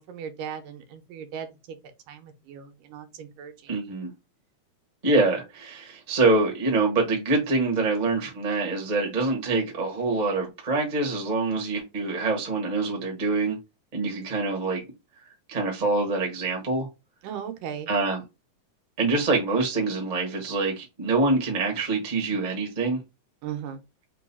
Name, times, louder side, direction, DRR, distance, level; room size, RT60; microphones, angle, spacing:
voice 1, 0.0-1.8 2.1-3.7 17.2-17.9 23.4-23.8, right 8 dB, 85° right, 2.3 m, -37 dB
voice 2, 3.7-4.1 5.0-13.6 13.9-14.8 15.5-16.9 17.9-18.2 19.0-23.0, right 3 dB, 60° right, 0.4 m, -25 dB
5.3 x 2.3 x 4.1 m
omnidirectional pair, 3.7 m